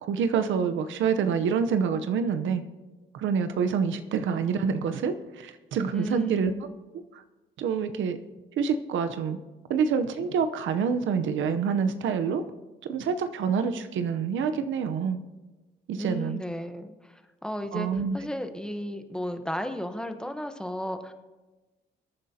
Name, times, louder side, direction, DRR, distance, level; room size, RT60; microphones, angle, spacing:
voice 1, 0.0-2.6 3.1-6.5 7.1-7.2 7.6-8.2 8.6-9.4 9.7-12.4 12.8-15.2 15.9-16.4 17.7-18.1, right 6 dB, 80° right, 9 dB, 0.8 m, -27 dB
voice 2, 5.9-6.6 16.0-21.1, equal, 5° left, 7 dB, 1.0 m, -34 dB
24.0 x 9.0 x 2.8 m, 1.2 s
cardioid pair, 90°, 20 cm